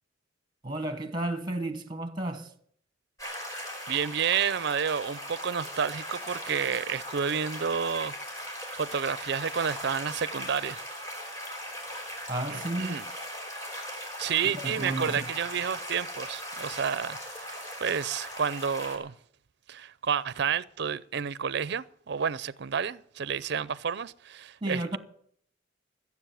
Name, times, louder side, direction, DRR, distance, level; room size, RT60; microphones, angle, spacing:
voice 1, 0.6-2.5 12.3-13.0 14.4-15.3 24.6-25.0, right 2 dB, 25° right, 1.1 m, -32 dB
sound 1, 3.2-19.0, equal, 15° left, 3.3 m, -39 dB
voice 2, 3.9-8.1 8.7-10.8 12.5-13.1 14.2-19.1 19.7-24.8, right 7 dB, 60° right, 0.5 m, -30 dB
15.0 x 7.2 x 9.2 m
head